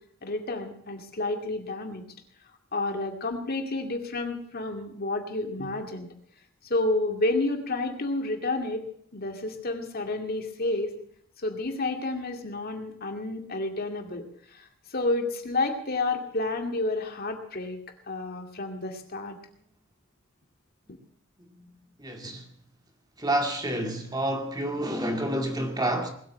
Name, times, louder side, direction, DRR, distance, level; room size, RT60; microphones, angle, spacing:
voice 1, 0.2-2.0 2.7-6.1 6.6-8.8 9.1-10.9 11.4-14.2 14.5-17.8 18.1-19.4, left 2 dB, 50° left, 2.3 m, -30 dB
voice 2, 22.0-22.4 23.2-26.1, right 1 dB, 20° right, 2.1 m, -28 dB
20.5 x 8.9 x 7.4 m
head